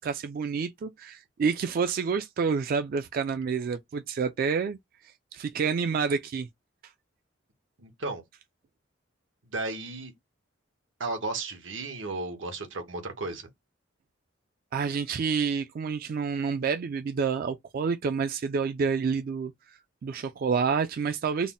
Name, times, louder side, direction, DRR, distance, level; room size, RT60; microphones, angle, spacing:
voice 1, 0.0-4.8 5.3-6.5 14.7-21.5, right 5 dB, 50° right, 0.3 m, -28 dB
voice 2, 7.8-8.2 9.5-10.1 11.0-13.5, right 3 dB, 90° right, 1.0 m, -34 dB
3.9 x 2.0 x 3.6 m
head